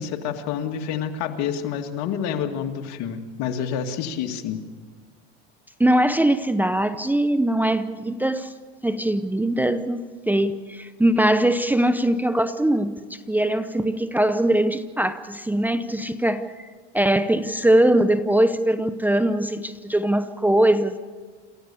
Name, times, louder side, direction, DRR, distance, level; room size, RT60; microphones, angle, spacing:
voice 1, 0.0-4.6, left 8 dB, 65° left, 2.1 m, -28 dB
voice 2, 5.8-8.5 8.8-16.5 16.9-21.0, right 1 dB, 5° right, 0.7 m, -21 dB
28.0 x 14.5 x 6.9 m
supercardioid pair, 115°, 30 cm